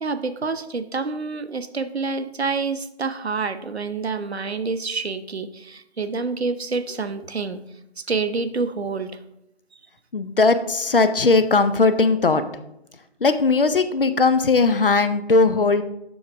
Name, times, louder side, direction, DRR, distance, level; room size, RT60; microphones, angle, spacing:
voice 1, 0.0-7.6 8.1-9.1, right 4 dB, 75° right, 11 dB, 0.7 m, -27 dB
voice 2, 10.1-12.4 13.2-15.8, left 3 dB, 55° left, 11 dB, 0.6 m, -18 dB
7.2 x 6.3 x 3.4 m, 0.84 s
figure-of-eight pair, 155°, 32 cm